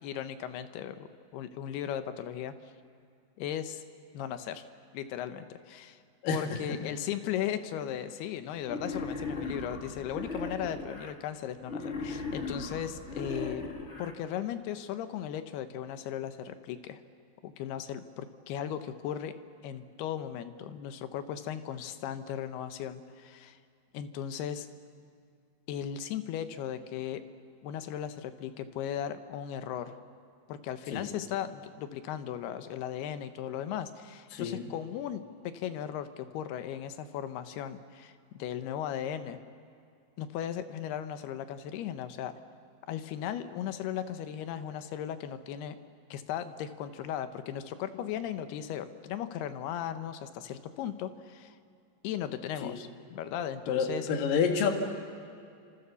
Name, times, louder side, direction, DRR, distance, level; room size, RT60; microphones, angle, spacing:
voice 1, 0.0-2.5 3.4-3.8 4.1-4.7 4.9-6.0 6.3-13.7 14.0-17.0 17.4-19.3 19.6-23.6 23.9-24.7 25.7-27.2 27.6-30.0 30.5-39.4 40.2-42.3 42.9-45.8 46.1-51.6 52.0-54.1, left 10 dB, 85° left, 10 dB, 3.1 m, -37 dB
voice 2, 6.2-6.8 30.9-31.1 34.3-34.7 52.6-52.8 53.7-54.7, left 6 dB, 65° left, 3 dB, 3.6 m, -29 dB
Wild animals, 8.6-11.1 11.6-14.1, left 3 dB, 30° left, 1.5 m, -37 dB
29.5 x 26.5 x 7.1 m, 2.4 s
omnidirectional pair, 4.5 m